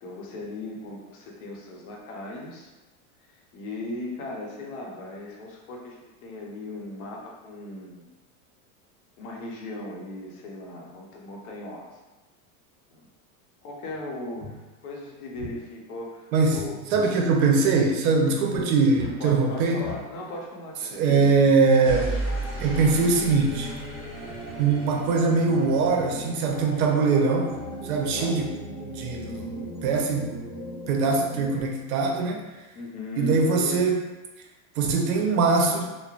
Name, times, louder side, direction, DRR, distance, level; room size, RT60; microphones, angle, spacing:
voice 1, 0.0-2.7 3.3-8.0 9.2-11.9 12.9-13.1 13.6-16.8 18.2-18.4 19.2-21.3 28.2-28.4 32.7-33.9, left 2 dB, 75° left, -1 dB, 0.8 m, -37 dB
sound 1, 13.9-14.0 14.4-14.5 15.3-15.5 16.5-17.0 17.7-17.9 18.5-18.7 18.9-19.1 19.8-20.0 21.8-31.6, right 1 dB, 20° left, 1.0 m, -36 dB
voice 2, 16.3-16.6 16.9-19.8 20.9-22.2 22.6-23.7 24.6-27.5 27.8-28.5 29.0-30.3 30.9-32.4 33.2-34.0 34.8-35.9, right 4 dB, 75° right, 1 dB, 0.6 m, -22 dB
3.1 x 2.0 x 2.4 m, 1.1 s
supercardioid pair, 145°, 43 cm